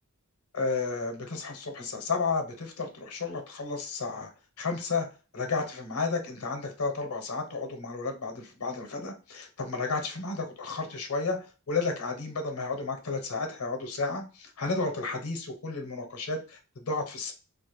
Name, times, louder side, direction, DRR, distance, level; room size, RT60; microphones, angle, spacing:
voice 1, 0.5-4.3 4.6-5.1 5.3-11.4 11.7-17.3, left 4 dB, 75° left, 5 dB, 0.6 m, -32 dB
2.3 x 2.1 x 2.9 m, 0.34 s
head